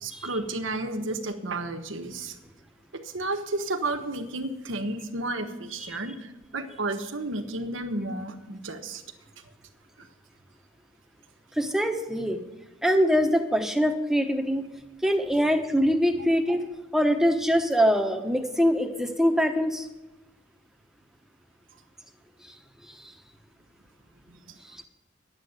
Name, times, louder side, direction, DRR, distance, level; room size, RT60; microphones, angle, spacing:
voice 1, 0.0-2.4 2.9-9.0 10.0-10.1 24.3-24.4, right 2 dB, 85° right, 6 dB, 1.3 m, -32 dB
voice 2, 11.5-12.4 12.8-14.7 15.0-19.9 22.4-22.6 22.9-23.1 24.6-24.8, equal, ahead, 4 dB, 0.9 m, -24 dB
11.0 x 8.1 x 8.0 m, 1.1 s
head